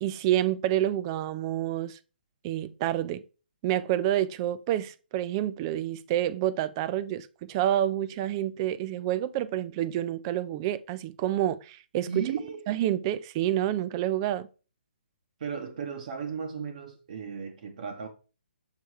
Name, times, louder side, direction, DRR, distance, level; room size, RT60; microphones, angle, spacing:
voice 1, 0.0-2.0 2.4-3.2 3.6-12.2 12.7-14.5, right 12 dB, 30° right, 0.4 m, -28 dB
voice 2, 12.1-12.7 15.4-18.1, right 6 dB, 50° right, 0.9 m, -35 dB
6.6 x 3.4 x 4.7 m
figure-of-eight pair, 135°, 6 cm